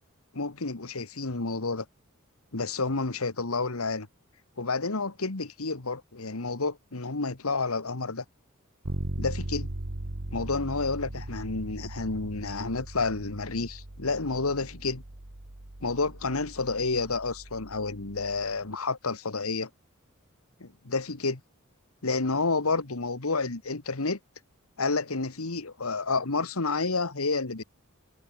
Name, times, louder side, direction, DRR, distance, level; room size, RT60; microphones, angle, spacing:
voice 1, 0.3-1.9 2.5-4.1 4.6-8.2 9.2-9.7 10.3-15.0 15.8-19.7 20.6-21.4 22.0-24.2 24.8-27.6, left 3 dB, 85° left, 1.7 m, -30 dB
Bass guitar, 8.8-18.6, right 1 dB, 85° right, 2.2 m, -39 dB
head